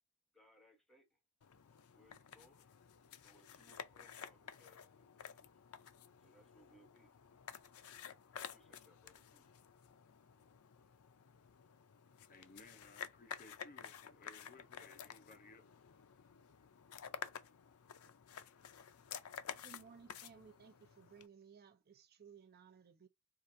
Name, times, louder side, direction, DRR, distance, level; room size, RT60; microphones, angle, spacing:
voice 1, 0.3-1.2 1.9-2.7 3.2-5.1 5.3-5.6 6.2-7.1 8.3-9.5, equal, ahead, 1.1 m, -68 dB
sound 1, 1.4-21.3, left 8 dB, 75° left, 0.5 m, -52 dB
voice 2, 12.3-15.7, left 3 dB, 40° left, 0.7 m, -60 dB
voice 3, 19.6-23.1, right 6 dB, 45° right, 0.5 m, -59 dB
4.7 x 2.5 x 2.6 m
head